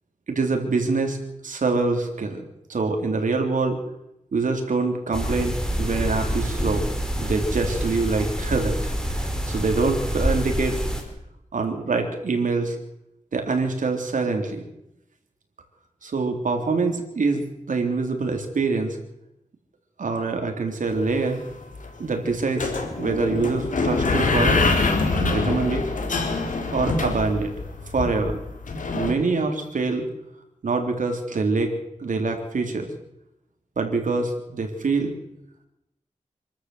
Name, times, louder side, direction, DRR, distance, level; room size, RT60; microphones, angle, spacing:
voice 1, 0.3-1.2 1.4-3.8 4.3-6.9 7.2-10.8 11.5-12.8 13.3-14.7 16.0-19.0 20.0-21.4 22.0-24.6 25.3-25.9 26.7-27.5 27.9-28.4 28.9-30.1 30.6-31.7 32.0-32.9 33.8-35.1, right 3 dB, 85° right, 4 dB, 3.6 m, -25 dB
sound 1, 5.1-11.0, equal, 5° left, 4.8 m, -27 dB
sound 2, 21.2-21.3 21.5-21.9 22.6-29.1, left 3 dB, 90° left, 3.7 m, -24 dB
26.5 x 13.0 x 7.9 m, 0.86 s
wide cardioid pair, 75°, 13 cm